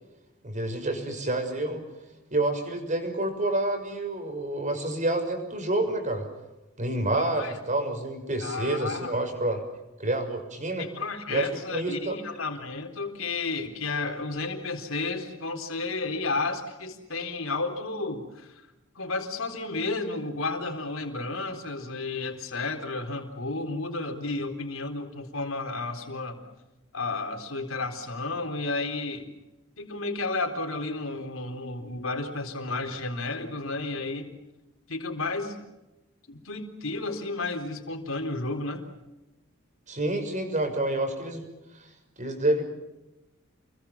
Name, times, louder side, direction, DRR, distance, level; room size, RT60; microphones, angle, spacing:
voice 1, 0.4-1.8 2.3-6.3 6.8-9.6 10.0-10.9 11.3-12.1 39.9-41.5 42.2-42.6, right 2 dB, 35° right, 6 dB, 6.3 m, -28 dB
voice 2, 7.1-7.5 8.4-9.1 10.8-18.7 19.0-26.4 26.9-29.3 29.8-34.3 34.9-35.6 36.3-38.8, left 3 dB, 70° left, 4 dB, 3.9 m, -32 dB
29.5 x 22.5 x 7.2 m, 0.98 s
head